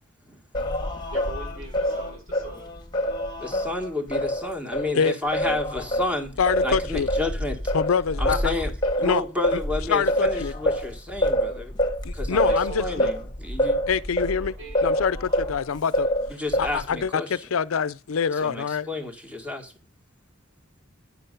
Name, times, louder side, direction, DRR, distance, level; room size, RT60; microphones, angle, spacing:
Singing, 0.5-4.9 5.3-15.6 15.9-16.9, equal, 20° left, 1.5 m, -26 dB
voice 1, 1.1-2.7 8.3-8.5 12.5-13.0 14.6-14.9, right 2 dB, 90° right, 5.3 m, -41 dB
voice 2, 3.4-6.3 6.6-7.6 8.2-8.7 9.0-11.7 12.1-12.5 12.8-13.8 16.3-17.5 18.4-19.7, left 2 dB, 5° right, 1.7 m, -30 dB
voice 3, 6.4-7.1 7.7-8.5 9.0-9.2 9.5-9.6 9.9-10.5 12.0-13.1 13.9-14.5 14.8-16.1 16.6-18.9, left 6 dB, 90° left, 0.5 m, -25 dB
9.5 x 6.6 x 5.3 m
head